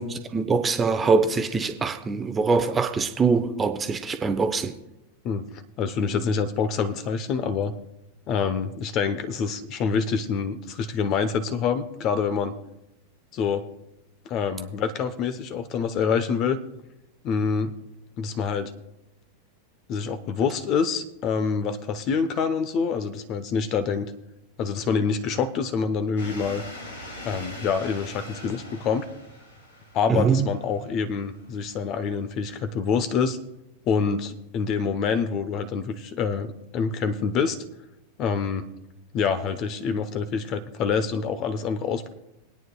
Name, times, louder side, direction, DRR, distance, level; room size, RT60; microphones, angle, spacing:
voice 1, 0.0-4.7 30.1-30.5, right 4 dB, 15° right, 0.8 m, -23 dB
voice 2, 5.8-7.7 8.3-12.5 13.3-13.6 14.3-16.6 17.2-17.7 18.2-18.7 19.9-24.1 24.6-26.6 27.2-29.1 29.9-33.4 33.8-36.5 36.7-37.6 38.2-38.6 39.1-42.1, left 6 dB, 35° left, 0.9 m, -26 dB
sound 1, 26.2-32.6, left 1 dB, 65° left, 2.5 m, -42 dB
23.0 x 9.3 x 2.3 m
figure-of-eight pair, 90°, 0 cm